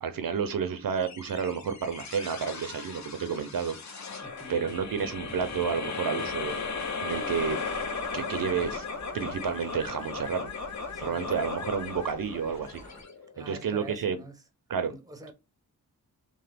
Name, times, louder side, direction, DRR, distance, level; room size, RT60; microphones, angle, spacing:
voice 1, 0.0-4.0 4.5-6.5 7.0-7.6 8.1-8.8 9.1-10.5 11.0-12.8 13.4-14.2 14.7-14.9, right 6 dB, 60° right, 0.5 m, -30 dB
sound 1, 1.0-13.7, left 4 dB, 45° left, 0.6 m, -36 dB
sound 2, 4.1-9.3, left 1 dB, 75° left, 1.3 m, -50 dB
voice 2, 4.2-4.6 10.9-11.3 13.3-14.4 14.9-15.3, right 2 dB, 10° right, 0.6 m, -46 dB
sound 3, 6.4-13.0, left 1 dB, 20° left, 1.2 m, -49 dB
2.9 x 2.1 x 3.3 m
wide cardioid pair, 65°, 38 cm